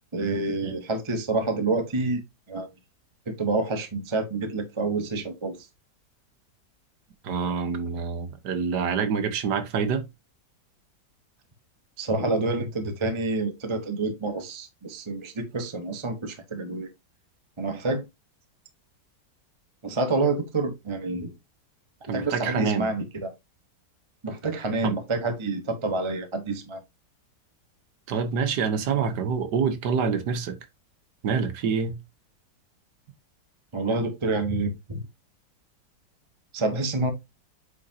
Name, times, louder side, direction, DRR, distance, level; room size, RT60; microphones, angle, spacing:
voice 1, 0.1-2.2 2.5-2.7 3.3-5.7 12.0-16.9 17.6-18.0 19.8-21.3 22.0-23.3 24.2-26.8 33.7-35.0 36.5-37.1, right 3 dB, 20° right, 0.9 m, -28 dB
voice 2, 7.2-10.0 22.1-22.9 24.8-25.0 28.1-30.6 31.2-32.0, right 6 dB, 75° right, 1.6 m, -26 dB
8.2 x 5.3 x 2.7 m
omnidirectional pair, 1.9 m